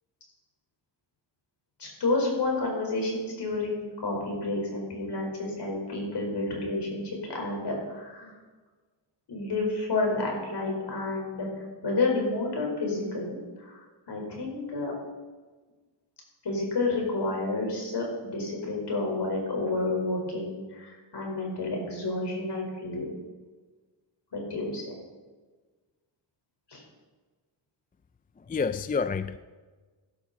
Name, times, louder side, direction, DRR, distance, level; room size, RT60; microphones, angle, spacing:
voice 1, 1.8-8.3 9.3-11.5 11.8-14.9 16.4-23.1 24.3-24.9 26.7-26.8, left 2 dB, 60° left, 4.8 m, -30 dB
voice 2, 28.4-29.4, left 5 dB, 20° left, 0.4 m, -29 dB
17.0 x 12.0 x 4.2 m
wide cardioid pair, 100°, 46 cm